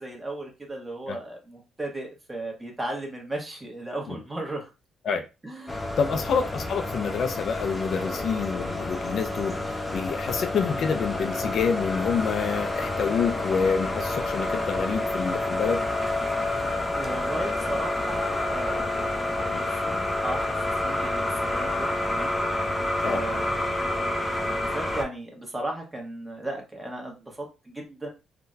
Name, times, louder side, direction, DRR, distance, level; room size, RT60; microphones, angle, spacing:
voice 1, 0.0-4.7 5.4-5.8 6.1-6.2 7.9-8.2 16.9-20.5 20.8-22.4 23.0-28.1, right 1 dB, 15° right, 1.2 m, -36 dB
sound 1, 5.7-25.0, left 2 dB, 15° left, 0.6 m, -29 dB
voice 2, 6.0-9.6 9.9-15.8 19.5-19.6 23.0-23.2, left 6 dB, 60° left, 0.4 m, -27 dB
3.7 x 2.2 x 2.6 m
cardioid pair, 90°, 0 cm